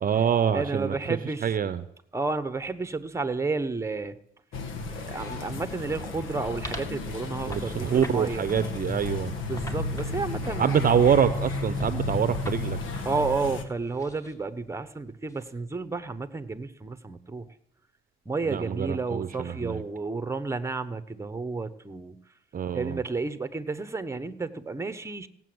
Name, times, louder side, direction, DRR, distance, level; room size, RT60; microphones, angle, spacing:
voice 1, 0.0-1.0 1.4-1.8 7.5-9.3 10.6-12.8 18.5-19.8 22.5-23.0, right 8 dB, 45° right, 13 dB, 0.7 m, -25 dB
voice 2, 0.5-1.5 2.1-4.2 4.9-8.5 9.4-11.0 13.0-17.5 18.2-22.2 22.7-25.3, right 3 dB, 15° right, 12 dB, 1.1 m, -31 dB
sound 1, 4.5-13.6, left 3 dB, 85° left, 1.5 m, -33 dB
sound 2, 5.0-14.3 15.3-15.5, equal, 15° left, 2.1 m, -43 dB
17.0 x 7.5 x 7.9 m, 0.72 s
cardioid pair, 90°, 20 cm